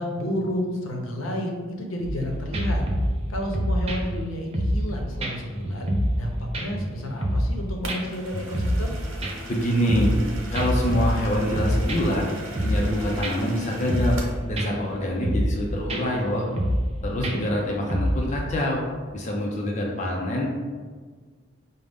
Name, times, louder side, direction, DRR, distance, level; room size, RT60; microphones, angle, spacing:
voice 1, 0.0-2.8 3.3-8.9 17.1-17.4, equal, 85° left, 2 dB, 0.7 m, -31 dB
sound 1, 2.0-2.2 2.5-4.9 5.2-5.3 5.7-6.3 6.5-7.6 7.9-8.0 8.3-8.9 9.2-10.3 10.6-12.2 12.6-12.9 13.2-13.3 13.7-14.3 14.6-14.9 15.2-15.6 15.9-16.0 16.4-16.9 17.2-18.3, equal, 30° right, 0.4 m, -26 dB
sound 2, 7.8-14.4, right 2 dB, 75° right, 0.7 m, -40 dB
voice 2, 9.5-10.1 10.5-12.3 12.6-14.2 14.5-16.5 17.0-18.8 19.1-20.5, equal, 35° left, -1 dB, 0.5 m, -25 dB
5.0 x 2.1 x 3.4 m, 1.5 s
head